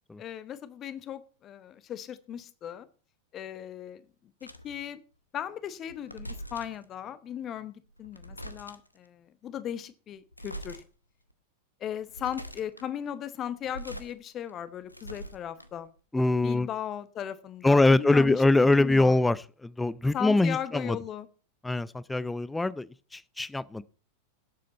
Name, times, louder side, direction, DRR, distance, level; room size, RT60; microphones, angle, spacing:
voice 1, 0.2-2.9 3.3-5.0 5.3-10.8 11.8-15.9 16.4-19.2 20.1-21.3, left 10 dB, 30° left, 14 dB, 1.0 m, -37 dB
sound 1, 4.4-4.8 5.9-6.8 7.9-9.0 10.3-10.8 11.3-11.4 12.0-12.9 13.5-14.1 14.5-15.9, right 1 dB, 85° left, 0.9 m, -43 dB
voice 2, 16.1-16.7 17.6-21.0 21.6-23.8, left 2 dB, 5° left, 20 dB, 0.5 m, -23 dB
17.5 x 7.6 x 4.2 m, 0.38 s
figure-of-eight pair, 90°, 0 cm